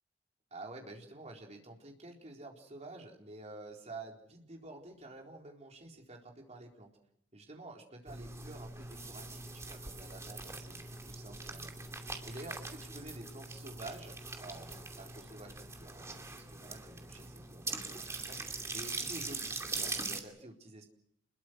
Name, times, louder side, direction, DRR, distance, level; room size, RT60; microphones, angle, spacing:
voice 1, 0.5-6.9 7.3-20.9, right 2 dB, 35° right, 1 dB, 4.1 m, -50 dB
sound 1, 8.1-20.2, right 3 dB, 15° right, 2.6 m, -42 dB
28.0 x 21.5 x 6.4 m, 0.72 s
head